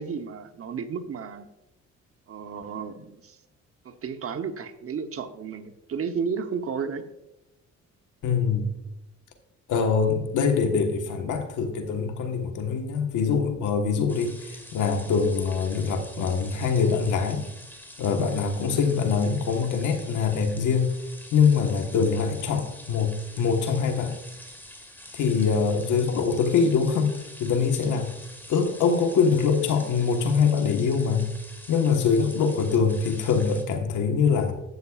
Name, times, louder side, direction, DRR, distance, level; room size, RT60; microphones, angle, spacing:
voice 1, 0.0-1.5 2.3-3.4 3.8-7.0, right 6 dB, 50° right, 8 dB, 1.0 m, -33 dB
voice 2, 8.2-8.7 9.7-17.4 18.0-20.9 21.3-24.2 25.1-27.1 27.4-28.1 28.5-31.3 31.7-34.5, left 5 dB, 80° left, 5 dB, 1.4 m, -23 dB
sound 1, 14.1-33.6, left 1 dB, 5° left, 1.9 m, -46 dB
12.5 x 8.3 x 2.4 m, 0.89 s
cardioid pair, 90°, 30 cm